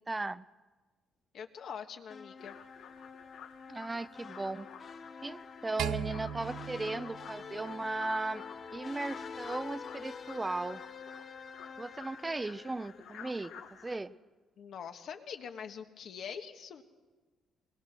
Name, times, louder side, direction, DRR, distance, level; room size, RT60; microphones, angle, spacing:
voice 1, 0.1-0.4 3.7-4.7 5.2-8.4 8.7-10.8 11.8-13.5 13.8-14.1, right 2 dB, 20° right, 16 dB, 0.6 m, -36 dB
voice 2, 1.3-2.6 14.6-16.8, left 7 dB, 70° left, 6 dB, 1.3 m, -44 dB
sound 1, 2.1-13.3, left 5 dB, 45° left, 0.9 m, -47 dB
sound 2, 2.4-14.0, left 7 dB, 90° left, 1.4 m, -52 dB
sound 3, 5.8-8.2, right 9 dB, 85° right, 0.7 m, -38 dB
21.0 x 20.0 x 6.1 m, 1.3 s
cardioid pair, 90°, 0 cm